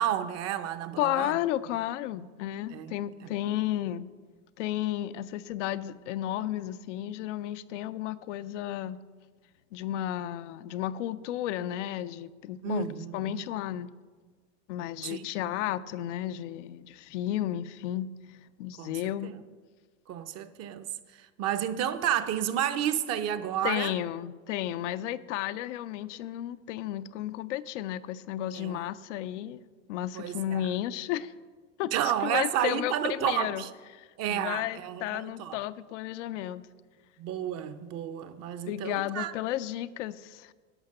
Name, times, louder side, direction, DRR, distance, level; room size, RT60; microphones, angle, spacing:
voice 1, 0.0-1.3 2.7-3.3 12.6-13.5 15.0-15.2 18.8-19.0 19.2-19.4 20.1-20.9 21.2-23.9 28.5-28.8 30.1-30.6 31.9-33.7 34.2-35.6 37.2-39.3, right 10 dB, 45° right, 0.7 m, -31 dB
voice 2, 1.0-4.1 4.6-9.0 9.7-12.9 13.1-13.9 14.7-19.3 23.6-29.6 29.9-31.3 31.8-33.6 33.9-36.7 38.7-40.5, left 12 dB, 75° left, 0.6 m, -33 dB
11.0 x 5.8 x 6.5 m
supercardioid pair, 110°, 36 cm